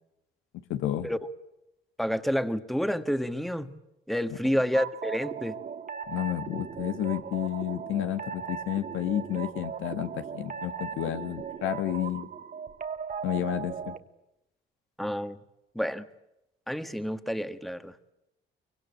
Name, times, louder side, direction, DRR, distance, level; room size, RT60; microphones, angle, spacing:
voice 1, 0.7-1.1 6.1-12.3 13.2-14.0, left 12 dB, 90° left, 9 dB, 1.9 m, -31 dB
voice 2, 2.0-3.7 4.1-5.6 15.0-15.4 15.7-16.1 16.7-17.9, equal, ahead, 11 dB, 1.7 m, -29 dB
sound 1, 4.7-14.0, right 7 dB, 45° right, 1.6 m, -38 dB
24.5 x 23.5 x 8.6 m, 0.90 s
cardioid pair, 90°, 20 cm